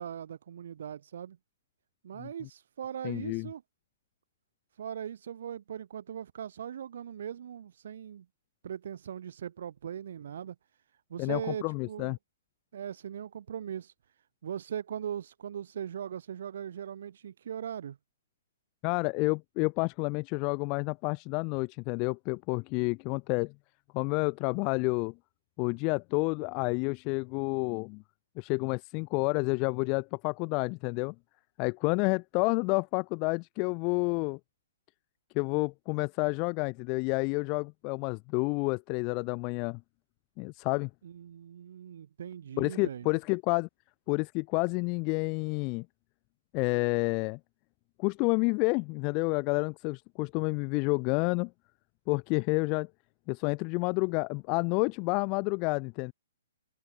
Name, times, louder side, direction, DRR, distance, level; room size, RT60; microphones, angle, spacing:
voice 1, 0.0-1.4 2.0-3.6 4.8-8.2 8.6-10.5 11.1-12.1 12.7-13.9 14.4-18.0 41.0-43.1, right 9 dB, 60° right, 6.7 m, -39 dB
voice 2, 3.0-3.5 11.2-12.2 18.8-23.5 23.9-25.1 25.6-28.0 28.4-31.1 31.6-34.4 35.3-39.8 40.4-40.9 42.6-43.7 44.1-45.8 46.5-47.4 48.0-51.5 52.1-52.9 53.3-56.1, left 32 dB, 35° left, 3.0 m, -29 dB
figure-of-eight pair, 120°, 0 cm